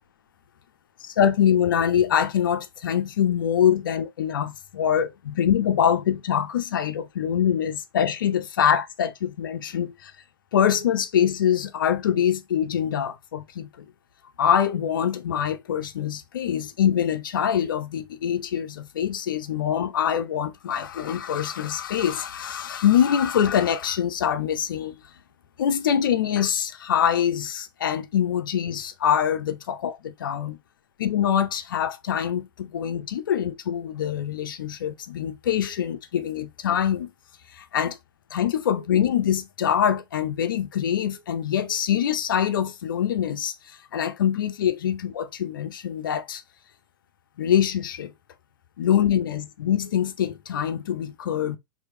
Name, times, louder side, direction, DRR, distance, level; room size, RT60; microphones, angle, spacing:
voice 1, 1.0-10.1 10.5-13.9 14.4-25.0 25.6-30.6 31.0-37.1 37.5-38.0 38.3-46.4 47.4-48.1 48.8-51.6, left 9 dB, 65° left, 0.6 m, -24 dB
4.6 x 2.8 x 2.8 m
figure-of-eight pair, 95°, 12 cm